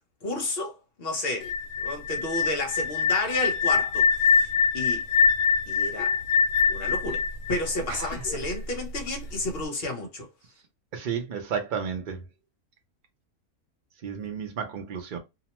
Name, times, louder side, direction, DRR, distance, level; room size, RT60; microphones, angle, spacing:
voice 1, 0.2-1.5 1.8-5.1 5.7-6.2 6.7-7.2 7.5-10.3, left 2 dB, 50° left, 0.8 m, -31 dB
sound 1, 1.4-8.3, left 6 dB, 85° left, 1.1 m, -24 dB
voice 2, 10.9-12.2 14.0-15.2, right 7 dB, 55° right, 0.5 m, -32 dB
2.8 x 2.1 x 2.9 m
omnidirectional pair, 1.6 m